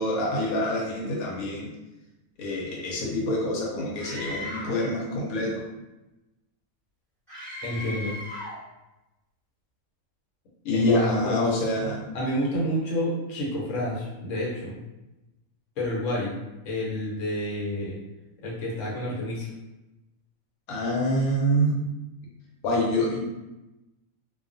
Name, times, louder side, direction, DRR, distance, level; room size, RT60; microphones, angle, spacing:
voice 1, 0.0-1.7 2.4-5.6 10.6-12.1 20.7-21.8 22.6-23.2, left 1 dB, 85° left, -3 dB, 1.1 m, -26 dB
Screaming, 4.0-4.9 7.3-8.6, left 1 dB, ahead, 1.0 m, -37 dB
voice 2, 7.6-8.2 10.7-11.4 12.1-14.8 15.8-16.3 16.6-18.0 18.4-19.5, left 1 dB, 65° left, -4 dB, 1.1 m, -29 dB
2.3 x 2.3 x 2.5 m, 0.99 s
omnidirectional pair, 1.5 m